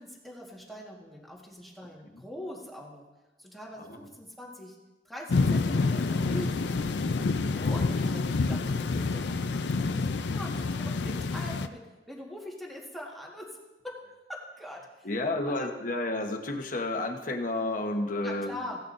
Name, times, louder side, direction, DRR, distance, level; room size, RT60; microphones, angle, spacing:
voice 1, 0.0-3.0 3.4-4.8 5.0-7.0 7.7-13.6 13.8-14.0 14.3-15.1 15.4-15.8 18.2-18.8, left 1 dB, ahead, -3 dB, 1.6 m, -43 dB
sound 1, 5.3-11.7, left 3 dB, 70° left, 0.5 m, -28 dB
voice 2, 15.0-18.6, left 2 dB, 50° left, 4 dB, 1.1 m, -31 dB
16.5 x 11.0 x 2.6 m, 1.1 s
head